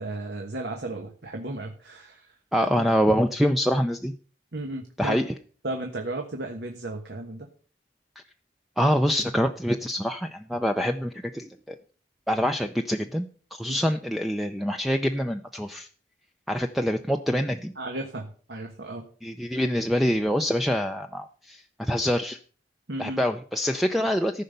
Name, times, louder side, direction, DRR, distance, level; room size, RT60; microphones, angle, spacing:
voice 1, 0.0-2.3 2.6-3.2 4.5-5.3 5.6-7.5 13.7-13.8 17.8-19.1 22.9-23.2, right 2 dB, 65° right, 3 dB, 1.4 m, -34 dB
voice 2, 2.5-4.1 5.0-5.2 8.8-11.8 12.3-13.3 13.5-15.9 16.5-17.7 19.2-22.4 23.0-24.4, equal, ahead, 6 dB, 0.5 m, -25 dB
14.5 x 5.5 x 6.7 m, 0.43 s
head